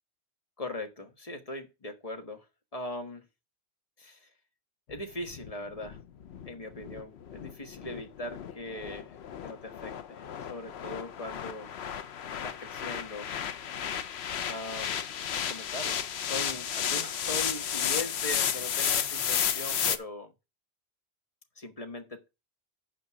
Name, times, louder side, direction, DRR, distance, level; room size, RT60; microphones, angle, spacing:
voice 1, 0.6-2.4 2.7-3.2 4.0-4.3 4.9-6.0 6.4-9.1 9.4-11.7 12.4-13.3 14.4-14.9 15.3-20.3 21.6-22.3, left 2 dB, 35° left, 1.5 m, -40 dB
sound 1, 4.9-20.0, left 8 dB, 75° left, 1.0 m, -33 dB
8.7 x 5.2 x 6.0 m
omnidirectional pair, 1.1 m